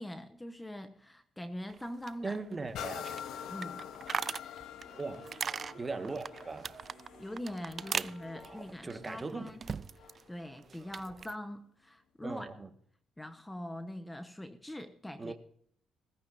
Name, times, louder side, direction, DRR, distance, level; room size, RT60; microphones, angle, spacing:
voice 1, 0.0-2.4 3.5-3.8 7.2-9.6 9.9-12.5 13.2-15.3, left 1 dB, 10° left, 1.1 m, -43 dB
sound 1, 1.7-10.2 10.5-11.3, right 6 dB, 45° right, 0.4 m, -41 dB
voice 2, 2.2-3.2 5.0-5.3 5.8-6.7 7.9-9.5 12.2-12.7 15.2-15.3, right 3 dB, 25° right, 1.6 m, -39 dB
sound 2, 2.7-10.4 10.9-11.0, left 9 dB, 80° left, 1.0 m, -46 dB
17.0 x 15.0 x 2.7 m
cardioid pair, 90°, 0 cm